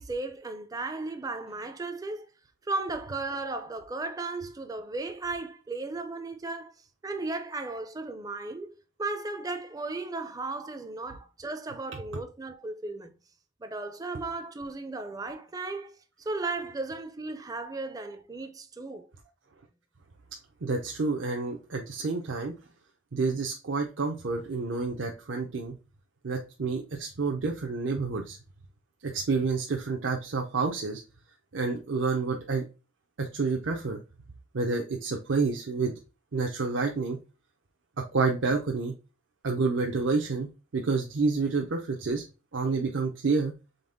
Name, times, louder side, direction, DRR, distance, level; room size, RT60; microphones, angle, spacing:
voice 1, 0.0-2.3 2.7-6.7 7.0-13.1 13.6-15.9 16.3-19.1, right 3 dB, 20° right, 0.4 m, -35 dB
voice 2, 20.6-22.5 23.1-25.8 26.2-28.4 29.0-31.0 31.5-32.6 33.2-34.0 34.5-35.9 36.3-37.2 38.1-38.9 39.4-42.2 42.5-43.5, right 4 dB, 75° right, 0.6 m, -29 dB
4.0 x 3.6 x 3.4 m
head